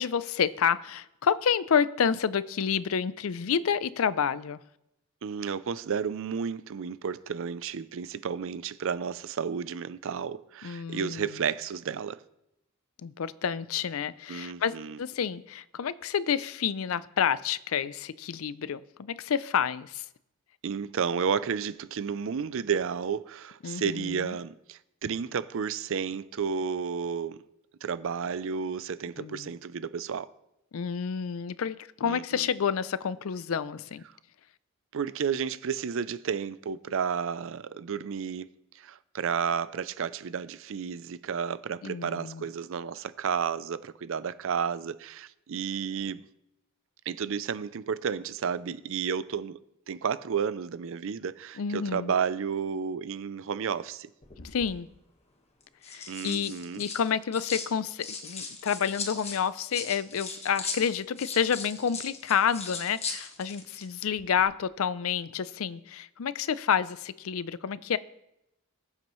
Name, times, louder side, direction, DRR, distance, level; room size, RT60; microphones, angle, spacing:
voice 1, 0.0-4.6 10.6-11.3 13.0-20.0 23.6-24.4 29.2-29.5 30.7-34.0 41.8-42.4 51.6-52.1 54.4-54.9 55.9-68.0, left 7 dB, 75° left, 0.5 m, -29 dB
voice 2, 5.2-12.2 14.3-15.0 20.6-27.4 27.8-30.3 32.0-32.5 34.9-38.5 38.8-46.2 47.1-49.6 49.9-54.1 56.1-56.8, right 6 dB, 65° right, 0.5 m, -32 dB
sound 1, 54.2-54.7 55.6-57.7 58.0-63.9 64.1-64.4, left 5 dB, 30° left, 1.4 m, -39 dB
20.5 x 7.4 x 3.1 m
head